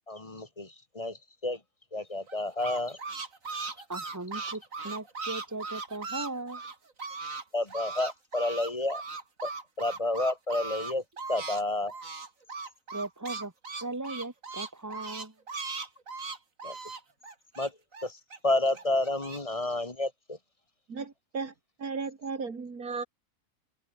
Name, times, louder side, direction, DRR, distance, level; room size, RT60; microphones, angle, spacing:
voice 1, 0.1-1.6 1.9-3.0 7.5-9.0 9.4-9.5 9.8-11.0 11.3-11.9 16.6-16.8 17.6-17.7 18.0-20.4, left 2 dB, 25° left, 1.5 m, -30 dB
sound 1, 2.3-7.4 7.7-11.6 11.9-18.4 18.7-19.4, right 4 dB, 65° right, 3.1 m, -38 dB
voice 2, 3.9-6.6 12.9-13.5 13.8-15.3, right 2 dB, 10° right, 2.3 m, -38 dB
voice 3, 20.9-23.0, right 4 dB, 85° right, 3.1 m, -36 dB
omnidirectional pair, 1.5 m